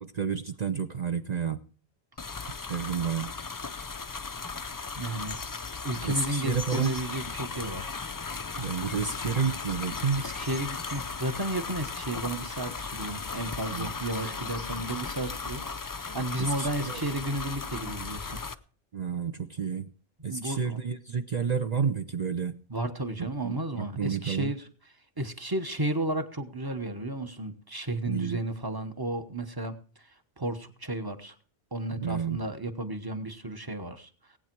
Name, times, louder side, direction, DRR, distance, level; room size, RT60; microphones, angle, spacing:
voice 1, 0.0-1.6 2.7-3.3 6.0-6.9 8.6-10.2 13.7-13.9 16.4-17.0 18.9-19.9 20.2-22.5 23.2-24.5 28.0-28.4 31.9-32.4, right 6 dB, 45° right, 8 dB, 0.7 m, -30 dB
sound 1, 2.2-18.5, left 4 dB, 30° left, 0.4 m, -36 dB
voice 2, 5.0-5.4 5.8-7.9 10.1-18.4 20.3-20.8 22.7-24.7 25.2-31.3 31.7-34.1, right 1 dB, 20° right, 8 dB, 1.1 m, -33 dB
18.5 x 8.8 x 4.6 m, 0.43 s
omnidirectional pair, 1.1 m